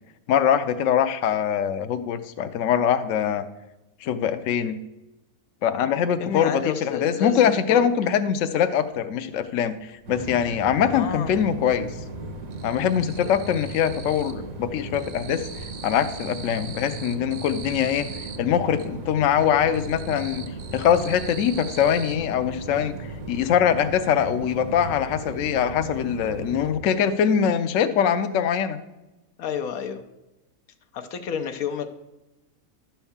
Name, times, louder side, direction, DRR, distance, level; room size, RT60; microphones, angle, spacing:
voice 1, 0.3-3.4 4.0-4.8 5.6-11.9 12.6-15.5 15.8-20.4 20.7-23.0 23.3-28.8, left 8 dB, 70° left, 9 dB, 0.9 m, -23 dB
voice 2, 6.2-7.9 10.8-11.4 29.4-30.0 30.9-31.9, left 7 dB, 90° left, 6 dB, 1.2 m, -30 dB
sound 1, 8.9-9.0 9.3-10.6 10.9-11.6 11.8-14.5 14.7-18.9 19.3-22.2, right 6 dB, 55° right, 1.0 m, -42 dB
sound 2, 10.0-26.7, right 2 dB, 70° right, 1.5 m, -37 dB
11.5 x 4.5 x 7.1 m, 1.0 s
omnidirectional pair, 1.5 m